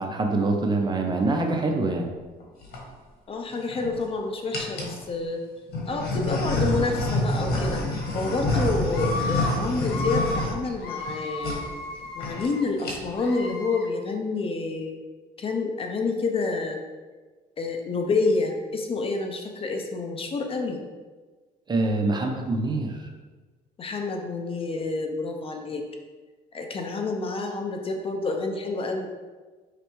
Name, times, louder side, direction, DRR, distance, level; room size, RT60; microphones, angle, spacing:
voice 1, 0.0-2.1 21.7-23.1, right 2 dB, 25° right, 3 dB, 0.5 m, -25 dB
sound 1, 2.4-2.8 3.5-4.0 4.5-5.0 5.7-11.1 11.4-11.6 11.9-12.0 12.2-12.5 12.8-13.2, left 1 dB, 65° left, 1.2 m, -27 dB
voice 2, 3.3-5.4 5.9-7.8 8.1-11.6 12.1-14.9 15.4-16.8 17.6-20.8 23.8-25.9 26.5-29.1, left 3 dB, 35° left, 3 dB, 0.5 m, -28 dB
Screaming, 7.8-8.4 8.9-9.5 9.8-10.5 10.8-12.7 13.2-13.9, left 3 dB, 85° left, 0.8 m, -34 dB
5.1 x 3.3 x 3.1 m, 1.3 s
cardioid pair, 110°, 17 cm